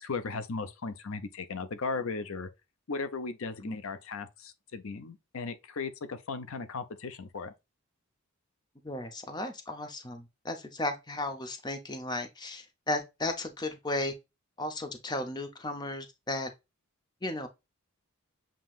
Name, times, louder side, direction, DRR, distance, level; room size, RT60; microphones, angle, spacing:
voice 1, 0.0-2.5 2.9-7.5, left 4 dB, 70° left, 0.6 m, -36 dB
voice 2, 8.8-14.1 14.6-16.5 17.2-17.5, left 2 dB, 20° left, 0.6 m, -35 dB
7.5 x 2.9 x 2.4 m
head